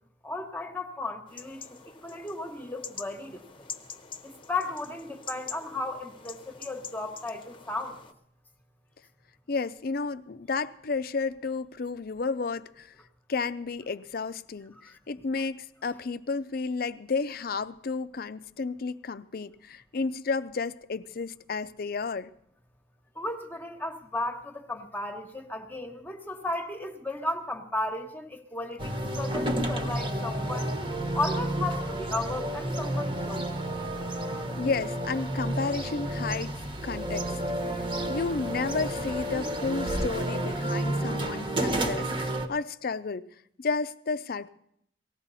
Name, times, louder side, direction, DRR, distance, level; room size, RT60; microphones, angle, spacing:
voice 1, 0.2-3.7 4.2-8.0 14.7-14.8 23.2-30.7 31.1-33.4, left 2 dB, 10° left, 1.2 m, -35 dB
sound 1, 1.3-8.1, left 6 dB, 30° left, 0.9 m, -45 dB
voice 2, 9.5-12.9 13.3-22.3 34.6-36.5 36.8-43.2 43.6-44.5, left 4 dB, 55° left, 0.5 m, -32 dB
sound 2, 28.8-42.5, right 1 dB, 30° right, 1.2 m, -31 dB
18.5 x 14.5 x 4.1 m
head